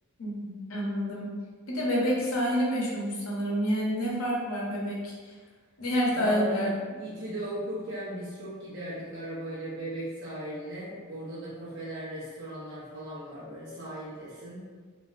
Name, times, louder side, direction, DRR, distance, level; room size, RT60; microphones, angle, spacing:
voice 1, 0.2-1.3 1.7-5.3 5.8-6.7, equal, 80° left, -4 dB, 0.7 m, -28 dB
voice 2, 6.1-6.7 7.0-14.7, equal, 60° right, -9 dB, 0.7 m, -37 dB
3.2 x 2.4 x 2.4 m, 1.5 s
head